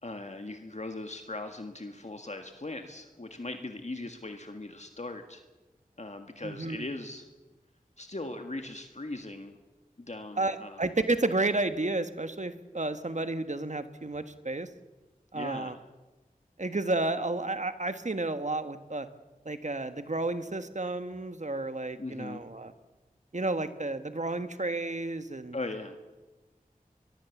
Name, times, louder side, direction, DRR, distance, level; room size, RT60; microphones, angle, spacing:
voice 1, 0.0-5.4 6.0-7.3 8.0-9.6 10.0-10.8 15.3-15.8 22.0-22.4 25.5-26.0, left 2 dB, 50° left, 6 dB, 1.7 m, -39 dB
voice 2, 6.4-6.9 10.4-14.7 15.3-15.7 16.6-19.1 19.4-22.7 23.3-25.6, right 2 dB, 55° right, 10 dB, 1.4 m, -31 dB
22.5 x 22.5 x 7.2 m, 1.1 s
wide cardioid pair, 40°, 15 cm